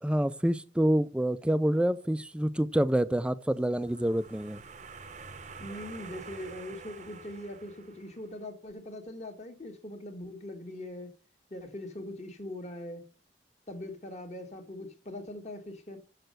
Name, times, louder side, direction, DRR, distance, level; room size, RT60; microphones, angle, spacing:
voice 1, 0.0-4.6, right 1 dB, 5° right, 0.4 m, -27 dB
sound 1, 3.6-8.4, right 4 dB, 40° right, 0.8 m, -47 dB
voice 2, 5.6-11.1 11.5-13.1 13.7-16.0, left 1 dB, 40° left, 1.7 m, -41 dB
6.8 x 6.6 x 7.8 m
head